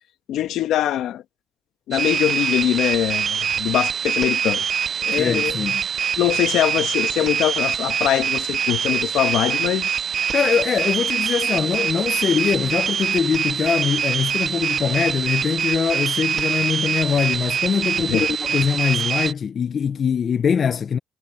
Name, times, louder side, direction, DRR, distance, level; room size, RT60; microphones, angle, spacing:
voice 1, 0.3-1.2 1.9-4.6 5.0-5.6 6.2-9.9 18.1-18.3, left 12 dB, 80° left, 1.2 m, -22 dB
sound 1, 1.9-19.3, right 7 dB, 55° right, 0.4 m, -24 dB
voice 2, 5.2-5.8 10.3-21.0, left 7 dB, 50° left, 0.7 m, -22 dB
cardioid pair, 90°, 0 cm